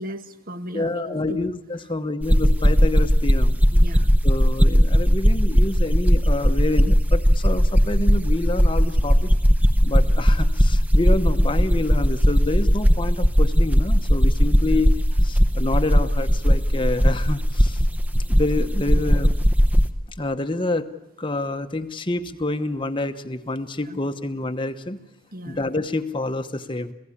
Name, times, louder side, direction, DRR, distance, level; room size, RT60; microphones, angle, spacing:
voice 1, 0.0-1.2 3.7-4.1 14.5-14.6 18.9-19.0 23.9-24.0 25.3-25.6, equal, 40° right, 9 dB, 1.3 m, -36 dB
voice 2, 0.7-3.6 4.2-9.3 9.8-17.8 18.3-19.3 20.2-20.9 21.2-25.0 25.5-26.9, left 2 dB, 20° left, 7 dB, 1.0 m, -27 dB
sound 1, 2.2-19.9, equal, 5° right, 0.9 m, -17 dB
28.5 x 16.5 x 9.9 m, 0.90 s
head